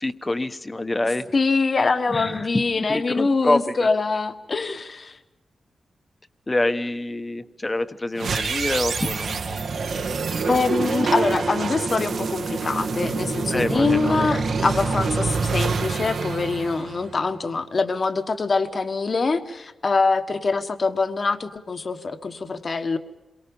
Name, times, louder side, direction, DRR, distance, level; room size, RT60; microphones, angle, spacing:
voice 1, 0.0-1.3 2.1-3.9 6.5-9.6 13.5-14.3, left 2 dB, 15° left, 10 dB, 1.0 m, -26 dB
voice 2, 1.3-5.2 10.4-23.0, left 4 dB, 35° left, 8 dB, 1.2 m, -24 dB
sound 1, 8.1-17.4, right 4 dB, 65° right, 1.8 m, -26 dB
28.5 x 23.0 x 5.4 m, 0.99 s
wide cardioid pair, 150°, 0 cm